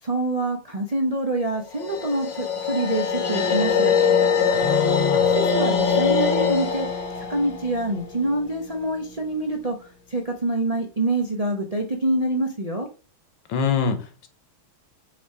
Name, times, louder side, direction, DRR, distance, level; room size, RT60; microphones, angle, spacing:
voice 1, 0.0-3.9 5.3-6.9 7.2-12.9, right 2 dB, 70° right, 1 dB, 0.3 m, -26 dB
sound 1, 1.7-8.9, left 6 dB, 45° left, 1.1 m, -23 dB
voice 2, 4.5-5.4 13.5-14.3, left 6 dB, 70° left, 9 dB, 1.6 m, -26 dB
6.1 x 3.5 x 4.6 m, 0.35 s
omnidirectional pair, 2.3 m